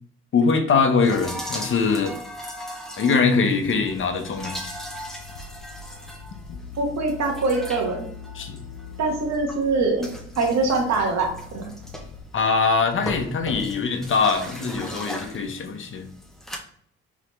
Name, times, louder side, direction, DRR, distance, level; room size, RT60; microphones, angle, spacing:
voice 1, 0.3-2.2 3.0-4.6 8.3-8.6 12.3-16.1, left 5 dB, 40° left, 6 dB, 0.8 m, -22 dB
sound 1, 1.0-16.6, equal, ahead, 0.9 m, -38 dB
sound 2, 3.6-12.2, left 7 dB, 90° left, 0.6 m, -42 dB
voice 2, 6.8-8.0 9.0-10.1 10.3-11.7, right 3 dB, 60° right, 1 dB, 1.3 m, -23 dB
4.1 x 3.5 x 3.1 m, 0.65 s
cardioid pair, 90°, 30 cm